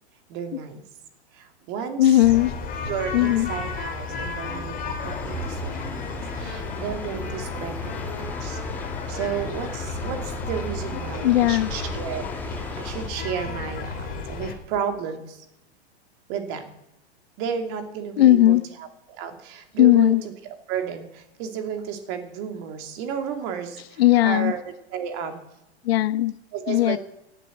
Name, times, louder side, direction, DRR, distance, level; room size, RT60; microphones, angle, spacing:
voice 1, 0.3-0.8 1.3-2.0 2.9-8.6 9.1-15.4 16.3-16.7 17.4-18.6 19.1-20.2 20.7-24.6 24.9-25.4 26.5-27.0, right 7 dB, 40° right, 2.8 m, -32 dB
voice 2, 2.0-2.6 3.1-3.5 10.9-11.7 14.3-14.4 18.2-18.7 19.8-20.2 24.0-24.5 25.8-26.3 26.7-27.0, left 14 dB, 65° left, 0.9 m, -18 dB
sound 1, 2.2-14.5, left 3 dB, 25° left, 3.1 m, -33 dB
sound 2, 5.0-13.1, left 2 dB, 5° left, 1.4 m, -39 dB
16.5 x 8.4 x 9.0 m
hypercardioid pair, 130°, 33 cm